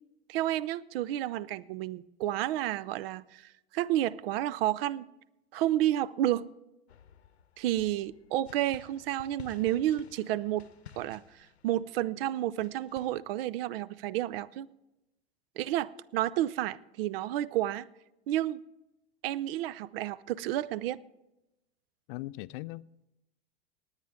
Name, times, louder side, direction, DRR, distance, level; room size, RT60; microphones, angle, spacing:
voice 1, 0.3-5.1 5.5-6.4 7.6-10.7 11.0-14.7 15.6-17.8 18.3-18.6 19.2-21.0, right 13 dB, 65° right, 0.5 m, -31 dB
sound 1, 6.9-13.2, left 9 dB, 85° left, 0.8 m, -54 dB
voice 2, 22.1-23.0, left 19 dB, 55° left, 0.4 m, -40 dB
19.5 x 9.1 x 3.5 m
hypercardioid pair, 90°, 32 cm